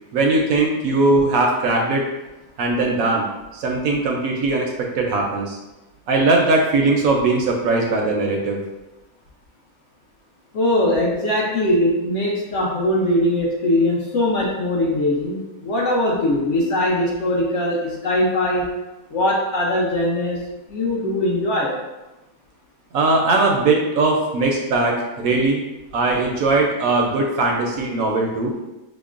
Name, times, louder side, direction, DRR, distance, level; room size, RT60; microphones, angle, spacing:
voice 1, 0.1-2.0 2.6-3.3 3.5-5.6 6.1-8.6 22.9-25.6 25.9-28.5, right 3 dB, 70° right, 0 dB, 0.9 m, -19 dB
voice 2, 10.5-18.6 19.1-20.4 20.7-21.7, left 1 dB, 60° left, -4 dB, 0.8 m, -21 dB
5.8 x 2.0 x 2.4 m, 1.0 s
omnidirectional pair, 1.7 m